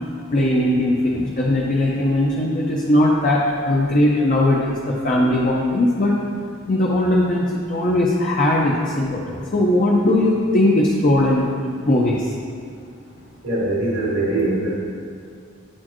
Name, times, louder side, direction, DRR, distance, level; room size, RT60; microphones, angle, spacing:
voice 1, 0.3-6.1 6.7-11.5 11.9-12.2, left 1 dB, 40° left, -3 dB, 0.6 m, -19 dB
voice 2, 13.4-14.7, right 2 dB, 80° right, -8 dB, 1.5 m, -22 dB
9.5 x 4.3 x 3.0 m, 2.3 s
head